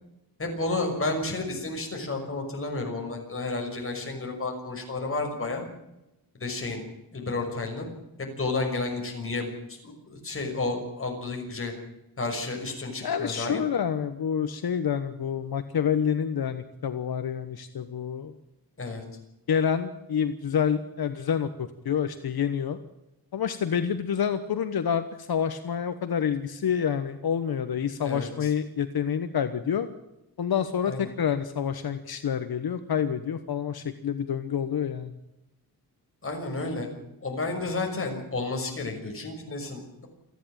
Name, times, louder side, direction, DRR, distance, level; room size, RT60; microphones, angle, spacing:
voice 1, 0.4-5.6 6.4-6.8 7.1-7.9 8.2-11.7 12.2-13.6 18.8-19.0 28.0-28.5 30.8-31.0 36.2-36.9 37.2-40.1, left 3 dB, 35° left, 2 dB, 6.1 m, -31 dB
voice 2, 13.0-18.4 19.5-22.8 23.3-29.9 30.4-35.2, left 8 dB, 80° left, 10 dB, 1.3 m, -28 dB
28.5 x 10.5 x 9.0 m, 0.91 s
wide cardioid pair, 145°, 37 cm